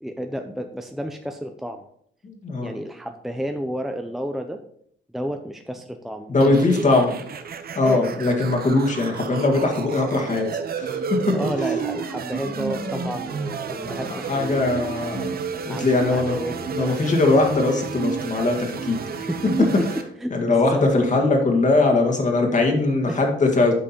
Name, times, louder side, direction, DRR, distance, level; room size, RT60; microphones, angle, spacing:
voice 1, 0.0-1.8 2.6-4.6 5.1-6.9 7.8-8.1 11.3-15.0 15.7-17.0 19.3-21.2 23.0-23.2, equal, ahead, 5 dB, 0.6 m, -31 dB
voice 2, 2.2-2.7 6.3-7.1 7.8-10.5 10.7-11.2 12.7-13.1 13.9-15.3 15.6-16.4 16.7-19.3 20.3-23.7, left 2 dB, 40° left, 2 dB, 2.1 m, -21 dB
sound 1, 6.4-20.0, right 6 dB, 50° right, 0.9 m, -31 dB
8.6 x 5.2 x 4.4 m, 0.66 s
cardioid pair, 90°, 20 cm